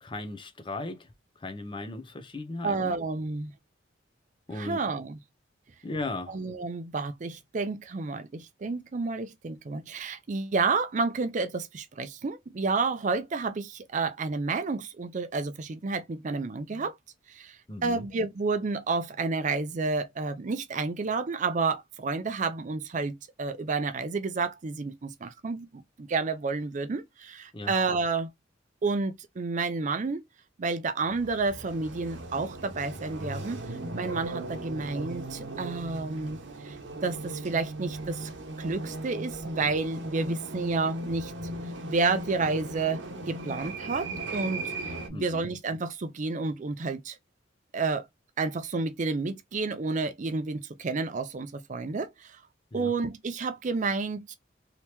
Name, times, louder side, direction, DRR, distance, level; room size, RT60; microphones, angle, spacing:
voice 1, 0.0-1.1 1.4-3.0 4.5-4.8 5.8-6.3 17.7-18.1 27.5-27.7 45.1-45.5 52.7-52.9, left 2 dB, 25° left, 0.6 m, -37 dB
voice 2, 2.6-3.5 4.5-5.2 6.3-16.9 17.3-17.6 17.8-28.3 28.8-30.2 30.6-33.6 33.9-36.4 36.6-36.8 37.0-38.3 38.6-41.3 41.8-44.6 45.1-47.2 47.7-48.1 48.4-52.4 52.7-54.3, right 4 dB, 40° right, 0.4 m, -30 dB
sound 1, 31.0-45.1, right 2 dB, 70° right, 0.9 m, -38 dB
3.3 x 2.9 x 2.9 m
head